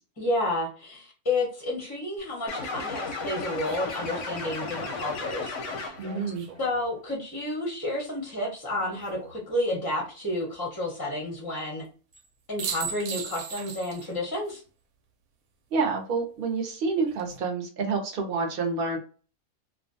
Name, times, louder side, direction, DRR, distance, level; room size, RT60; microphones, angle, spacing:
voice 1, 0.2-5.9 6.6-11.8 12.5-14.6, left 1 dB, 25° left, -2 dB, 0.5 m, -31 dB
sound 1, 2.2-2.3 3.6-6.9 8.7-9.4 12.1-12.3 12.6-14.1 14.5-14.6 16.9-17.4, right 6 dB, 85° right, 1.1 m, -39 dB
sound 2, 2.5-6.3, left 3 dB, 70° left, 0.8 m, -34 dB
voice 2, 6.0-6.4 15.7-19.0, right 4 dB, 55° right, 2 dB, 0.7 m, -28 dB
2.5 x 2.3 x 2.5 m, 0.37 s
omnidirectional pair, 1.6 m